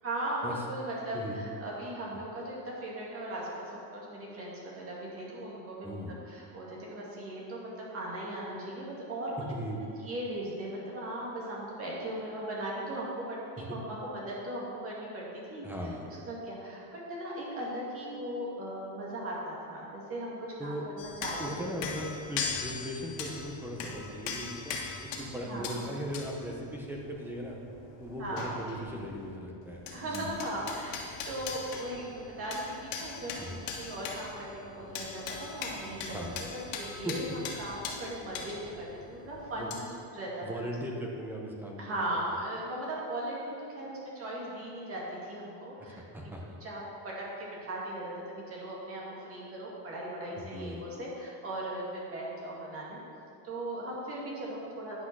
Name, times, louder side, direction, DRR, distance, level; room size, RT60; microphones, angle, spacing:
voice 1, 0.0-9.3 10.0-15.6 16.1-21.9 25.5-25.8 28.2-28.5 29.9-30.9 31.3-32.6 33.0-37.2 37.6-40.7 41.8-46.3 46.6-53.0 53.4-55.0, right 1 dB, 30° right, -5 dB, 2.2 m, -38 dB
voice 2, 5.8-6.2 9.5-9.8 13.7-13.8 15.6-16.1 20.6-20.8 21.4-27.6 28.0-30.3 33.4-33.6 36.1-36.4 37.0-37.2 39.6-39.7 40.4-41.9 45.8-46.6 50.4-50.8, equal, 5° right, -1 dB, 0.5 m, -38 dB
sound 1, 21.0-29.4 29.6-39.8, left 5 dB, 80° left, 1.7 m, -41 dB
10.0 x 6.1 x 6.0 m, 2.5 s
cardioid pair, 180°, 49 cm